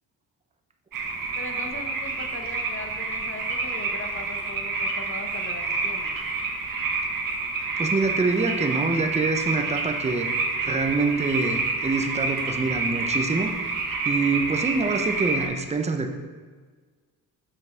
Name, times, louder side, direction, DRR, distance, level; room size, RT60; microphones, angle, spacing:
sound 1, 0.9-15.5, right 3 dB, 60° right, 1.4 m, -28 dB
voice 1, 1.3-6.1, left 2 dB, 35° left, 4 dB, 1.1 m, -39 dB
voice 2, 7.8-10.3 10.6-13.5 14.0-16.1, right 3 dB, 20° right, 5 dB, 0.7 m, -25 dB
6.1 x 5.7 x 4.4 m, 1.5 s
cardioid pair, 80°, 37 cm